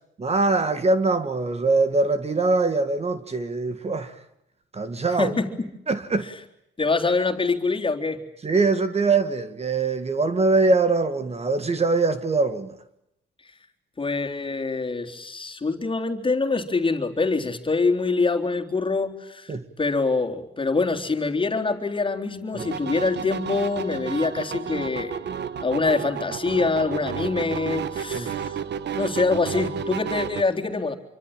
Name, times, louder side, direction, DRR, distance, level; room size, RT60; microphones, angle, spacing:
voice 1, 0.2-4.2 4.7-5.3 5.9-6.3 8.4-12.8 19.5-19.6 22.5-22.7 28.1-28.3, right 3 dB, 30° right, 1.9 m, -23 dB
voice 2, 6.8-8.2 14.0-25.2 25.6-28.6 28.9-31.0, left 3 dB, 25° left, 3.6 m, -25 dB
sound 1, 22.6-30.4, right 7 dB, 60° right, 1.4 m, -32 dB
27.0 x 24.5 x 8.9 m
cardioid pair, 90°, 20 cm